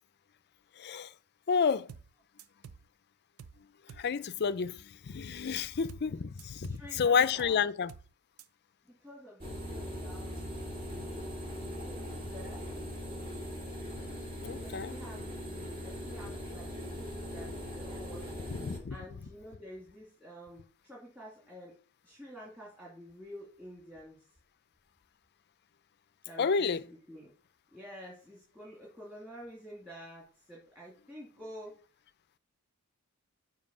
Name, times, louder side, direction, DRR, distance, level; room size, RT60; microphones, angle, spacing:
voice 1, 0.8-1.1 1.5-1.9 4.0-7.9 14.4-14.9 18.5-19.0 26.4-26.8, left 6 dB, 50° left, 0.5 m, -30 dB
sound 1, 1.9-2.1 2.4-2.9 3.4-3.6 3.9-4.1 5.9-6.1 6.4-6.9 7.4-7.6 7.9-8.1 8.4-8.5, right 6 dB, 70° right, 0.5 m, -50 dB
voice 2, 6.7-7.6 8.8-10.3 11.9-12.8 14.5-21.8 22.0-24.3 26.2-27.3 27.7-31.8, equal, 10° right, 2.7 m, -49 dB
sound 2, 9.4-18.8, equal, 40° right, 2.7 m, -40 dB
7.4 x 5.2 x 7.0 m
head